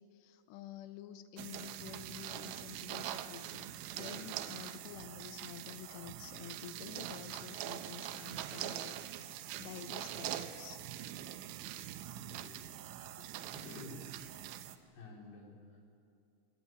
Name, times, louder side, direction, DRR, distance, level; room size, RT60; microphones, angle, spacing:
voice 1, 0.0-10.8, left 11 dB, 80° left, 11 dB, 2.5 m, -50 dB
sound 1, 1.4-14.8, right 12 dB, 80° right, 3.1 m, -43 dB
voice 2, 12.1-14.1 14.5-14.7 14.9-15.8, left 2 dB, 60° left, -1 dB, 5.6 m, -52 dB
22.0 x 18.5 x 9.1 m, 2.5 s
omnidirectional pair, 5.6 m